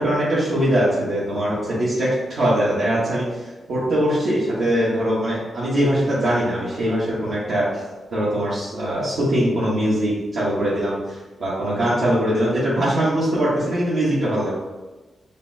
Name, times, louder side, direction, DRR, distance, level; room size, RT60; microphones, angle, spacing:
voice 1, 0.0-3.3 3.7-7.8 8.1-14.5, right 1 dB, 65° right, -9 dB, 1.1 m, -21 dB
5.2 x 2.1 x 2.6 m, 1.1 s
cardioid pair, 80°, 0 cm